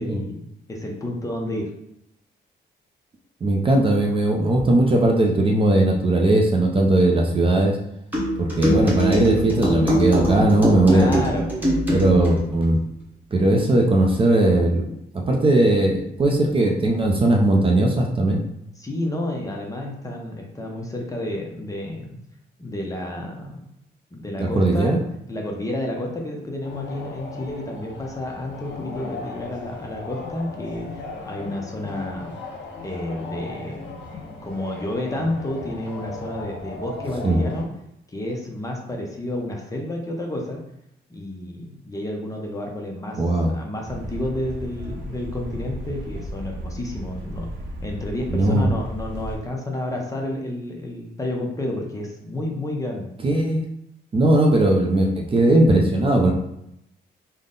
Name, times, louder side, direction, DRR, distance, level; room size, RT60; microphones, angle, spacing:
voice 1, 0.0-1.7 10.9-11.5 18.8-22.2 22.6-23.7 24.1-24.9 25.3-30.9 31.3-32.3 32.8-33.9 34.4-37.7 38.1-40.6 41.1-43.2 43.5-47.5 47.8-53.1, left 1 dB, 20° left, 0 dB, 0.6 m, -30 dB
voice 2, 3.4-7.8 8.4-11.3 11.9-12.8 13.3-14.8 15.1-18.4 24.4-25.0 37.2-37.4 43.2-43.5 48.3-48.7 53.2-53.6 54.1-56.3, right 1 dB, 30° right, 1 dB, 0.5 m, -18 dB
sound 1, 8.1-12.4, equal, 10° right, 1.1 m, -23 dB
sound 2, 26.6-37.6, left 3 dB, 75° left, 0.9 m, -37 dB
sound 3, 43.8-49.4, equal, 65° right, 0.7 m, -34 dB
3.8 x 2.1 x 3.7 m, 0.80 s
cardioid pair, 130°, 19 cm